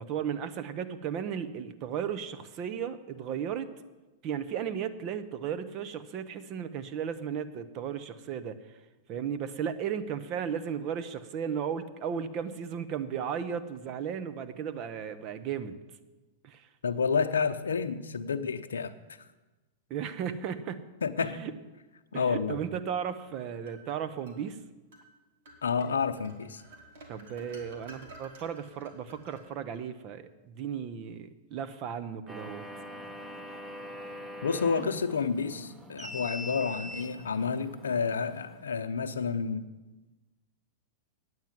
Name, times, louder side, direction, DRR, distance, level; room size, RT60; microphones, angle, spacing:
voice 1, 0.0-3.7 4.2-8.6 9.1-15.8 16.4-16.7 19.9-20.8 21.2-21.5 22.1-24.6 27.1-32.6, right 8 dB, 45° right, 11 dB, 0.9 m, -35 dB
voice 2, 16.8-18.9 21.0-21.4 22.1-22.6 25.6-26.6 34.4-39.7, left 5 dB, 85° left, 10 dB, 0.7 m, -30 dB
sound 1, 23.1-24.4 24.9-25.1 25.5-29.9, right 2 dB, 70° right, 2.5 m, -52 dB
sound 2, 32.3-38.6, left 1 dB, 15° right, 1.1 m, -43 dB
9.5 x 9.1 x 7.4 m, 1.2 s
hypercardioid pair, 110°, 0 cm